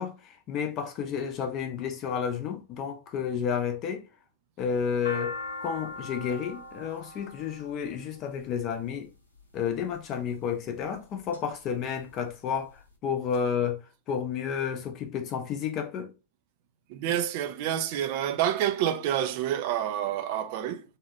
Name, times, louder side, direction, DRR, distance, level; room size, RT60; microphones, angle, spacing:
voice 1, 0.0-4.0 4.6-5.3 5.6-9.1 9.5-12.7 13.0-13.8 14.1-16.1, left 7 dB, 35° left, 0.6 m, -31 dB
sound 1, 4.6-8.8 9.7-10.1 10.7-11.4 11.7-11.8 12.0-12.8, left 3 dB, 80° left, 0.7 m, -40 dB
voice 2, 16.9-20.8, right 11 dB, 45° right, 0.4 m, -28 dB
2.8 x 2.4 x 2.7 m
figure-of-eight pair, 90°, 0 cm